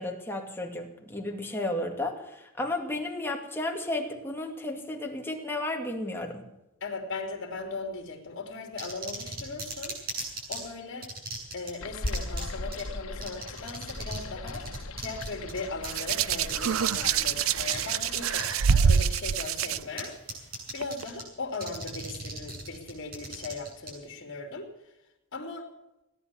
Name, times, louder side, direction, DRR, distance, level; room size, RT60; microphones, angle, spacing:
voice 1, 0.0-6.4, left 1 dB, 10° left, 1 dB, 2.2 m, -33 dB
voice 2, 6.8-10.0 10.5-11.1 11.5-14.7 15.0-24.7 25.3-25.7, left 3 dB, 60° left, 3 dB, 3.3 m, -38 dB
sound 1, 8.8-10.6 11.0-11.7 12.1-12.4 12.7-12.8 13.2-14.2 14.5-17.2 17.7-17.8 18.3-19.1 19.3-20.0 20.3-21.2 21.5-23.9, right 2 dB, 45° right, 8.0 m, -37 dB
sound 2, 11.8-18.4, left 2 dB, 85° left, 1.3 m, -39 dB
Hands, 15.9-19.8 20.8-21.0, right 7 dB, 70° right, 0.5 m, -25 dB
18.0 x 11.0 x 7.1 m, 0.93 s
head